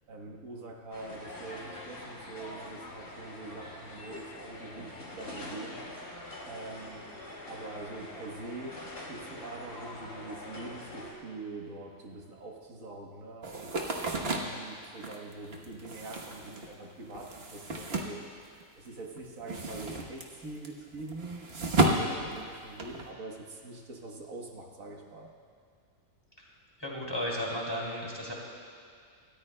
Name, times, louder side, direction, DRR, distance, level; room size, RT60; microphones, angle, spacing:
voice 1, 0.1-7.1 7.4-25.3, right 2 dB, 80° right, 0 dB, 1.7 m, -44 dB
sound 1, 0.9-11.1, left 1 dB, 55° left, 2.3 m, -44 dB
sound 2, 13.4-18.9 19.2-23.1, right 2 dB, 50° right, 1.3 m, -32 dB
voice 2, 26.8-28.3, equal, 15° left, -4 dB, 2.6 m, -34 dB
26.5 x 13.5 x 2.2 m, 2.2 s
omnidirectional pair, 1.4 m